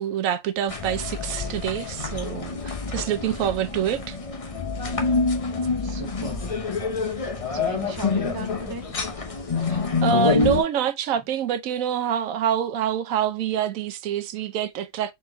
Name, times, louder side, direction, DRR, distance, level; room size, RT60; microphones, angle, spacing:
voice 1, 0.0-4.2 9.7-15.1, right 9 dB, 80° right, 1.0 m, -26 dB
sound 1, 0.7-10.6, left 4 dB, 35° left, 0.7 m, -27 dB
voice 2, 5.7-6.5 7.5-8.9, right 2 dB, 20° right, 0.7 m, -36 dB
4.3 x 3.1 x 3.4 m
omnidirectional pair, 1.4 m